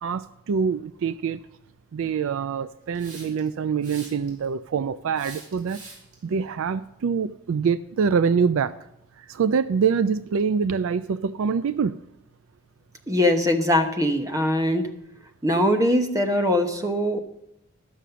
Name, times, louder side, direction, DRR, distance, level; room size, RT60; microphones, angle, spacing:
voice 1, 0.0-1.4 1.9-5.8 6.2-8.7 9.2-12.0, right 6 dB, 60° right, 14 dB, 0.3 m, -25 dB
Hiss, 3.0-3.5 3.8-4.5 5.2-6.1, right 3 dB, 85° right, 4.4 m, -43 dB
voice 2, 13.1-14.9 15.4-17.2, left 1 dB, 15° right, 6 dB, 0.9 m, -22 dB
13.0 x 6.2 x 6.8 m, 0.84 s
head